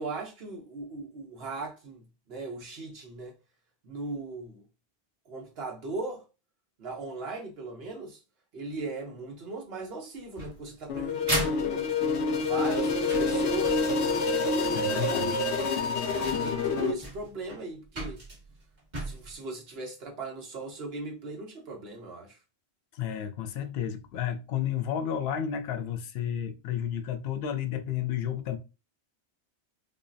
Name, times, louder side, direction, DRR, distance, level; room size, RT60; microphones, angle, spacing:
voice 1, 0.0-3.3 3.8-4.6 5.3-6.2 6.8-8.2 8.5-11.9 12.4-14.0 14.6-15.6 15.9-18.2 19.0-22.4, right 3 dB, 65° right, 1.2 m, -38 dB
sound 1, 10.4-14.0 15.3-15.4 15.9-16.0 16.2-19.3, right 1 dB, 40° right, 1.4 m, -36 dB
sound 2, 10.9-16.9, left 3 dB, 85° left, 1.1 m, -27 dB
voice 2, 14.7-15.4 22.9-28.6, left 9 dB, 70° left, 0.8 m, -32 dB
5.3 x 2.0 x 2.6 m
omnidirectional pair, 1.1 m